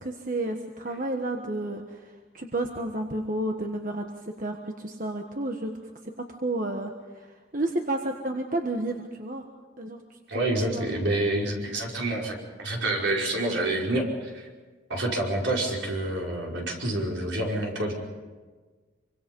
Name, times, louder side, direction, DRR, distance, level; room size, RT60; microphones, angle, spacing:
voice 1, 0.0-5.7 6.3-9.4 9.8-10.0 10.3-10.4 10.7-11.0 11.7-11.8, right 2 dB, 45° right, 3 dB, 1.4 m, -31 dB
voice 2, 10.3-14.5 14.9-17.9, right 1 dB, 75° right, -2 dB, 5.2 m, -28 dB
25.5 x 25.0 x 5.4 m, 1.4 s
head